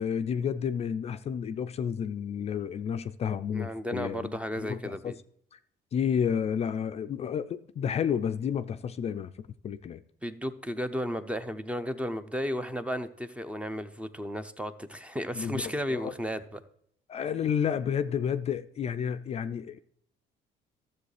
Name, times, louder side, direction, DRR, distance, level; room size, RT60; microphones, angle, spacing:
voice 1, 0.0-5.1 5.5-5.6 5.9-10.0 15.4-16.1 17.1-19.8, left 8 dB, 40° left, 0.4 m, -31 dB
voice 2, 3.5-5.2 10.2-16.6, equal, 5° right, 0.6 m, -34 dB
12.5 x 7.2 x 3.3 m
cardioid pair, 110°, 17 cm